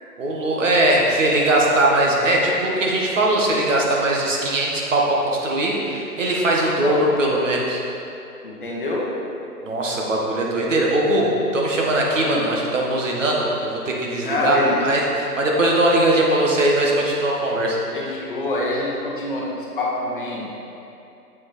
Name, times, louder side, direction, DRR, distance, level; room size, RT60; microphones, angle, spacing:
voice 1, 0.2-7.8 9.6-17.8, right 1 dB, 50° right, -2 dB, 1.4 m, -20 dB
voice 2, 8.4-9.1 12.2-12.4 14.2-14.8 17.9-20.5, left 2 dB, 35° left, -4 dB, 1.0 m, -26 dB
7.3 x 6.1 x 4.1 m, 2.8 s
hypercardioid pair, 155°, 47 cm